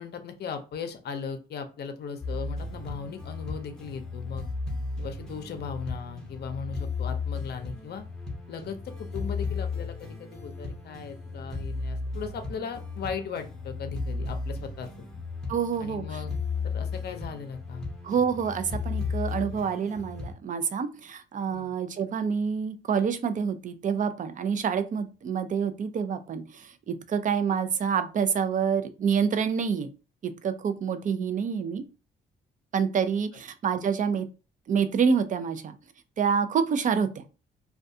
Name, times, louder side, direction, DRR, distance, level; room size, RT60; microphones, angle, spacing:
voice 1, 0.0-4.5 5.0-8.0 8.5-15.1 15.8-16.3 16.6-17.9 21.5-21.7, left 6 dB, 55° left, 7 dB, 0.6 m, -38 dB
sound 1, 2.2-20.3, left 4 dB, 5° left, 0.7 m, -35 dB
voice 2, 15.5-16.0 18.0-29.9 30.2-31.8 32.7-34.3 34.7-35.8 36.2-37.2, right 6 dB, 40° right, 11 dB, 0.4 m, -27 dB
2.3 x 2.2 x 2.6 m, 0.32 s
cardioid pair, 90°, 20 cm